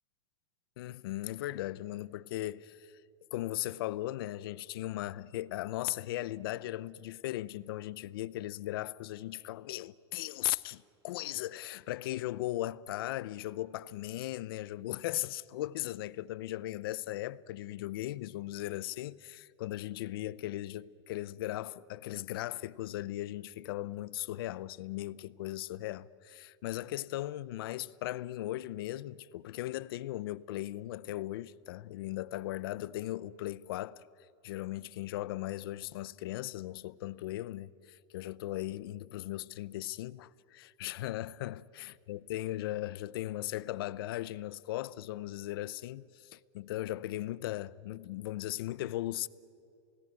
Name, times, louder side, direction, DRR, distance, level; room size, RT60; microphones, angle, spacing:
voice 1, 0.8-2.9 3.3-34.0 34.4-49.3, left 15 dB, 55° left, 0.6 m, -38 dB
29.0 x 18.0 x 9.1 m
supercardioid pair, 175°, 14 cm